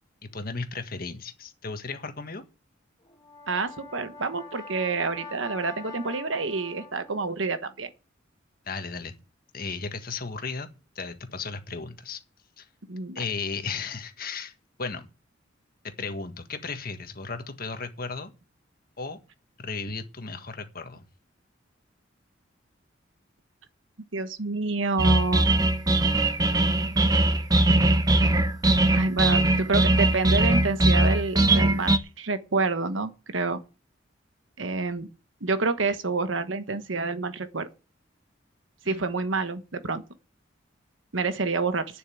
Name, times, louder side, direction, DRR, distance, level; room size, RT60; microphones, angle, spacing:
voice 1, 0.2-2.4 8.6-9.1 9.5-10.7 10.9-12.2 12.6-12.7 13.1-14.5 14.8-15.1 15.8-18.3 19.0-19.2 19.6-21.1 38.8-39.1, left 4 dB, 50° left, 1.6 m, -35 dB
Brass instrument, 3.1-7.3, left 4 dB, 20° left, 2.2 m, -43 dB
voice 2, 3.5-7.9 12.9-13.2 24.1-25.5 28.9-33.6 34.6-35.1 35.4-37.7 38.9-40.0 41.1-41.9, right 3 dB, 80° right, 1.3 m, -28 dB
sound 1, 25.0-32.0, right 2 dB, 20° right, 0.8 m, -21 dB
9.3 x 7.5 x 8.6 m
head